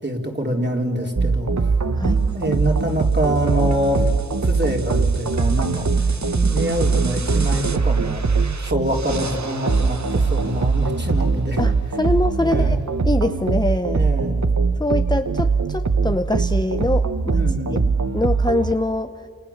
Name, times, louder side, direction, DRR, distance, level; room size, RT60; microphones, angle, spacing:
voice 1, 0.0-1.5 2.1-4.1 4.4-6.1 6.4-8.2 8.6-11.6 12.4-12.8 13.9-14.4 17.3-17.9, equal, 30° right, 1 dB, 3.8 m, -25 dB
sound 1, 1.2-18.7, right 4 dB, 50° right, 1.0 m, -21 dB
voice 2, 6.3-6.6 11.6-14.1 14.8-17.4 18.1-19.1, left 2 dB, 10° left, 8 dB, 0.7 m, -24 dB
30.0 x 28.0 x 7.2 m, 2.4 s
wide cardioid pair, 55°, 36 cm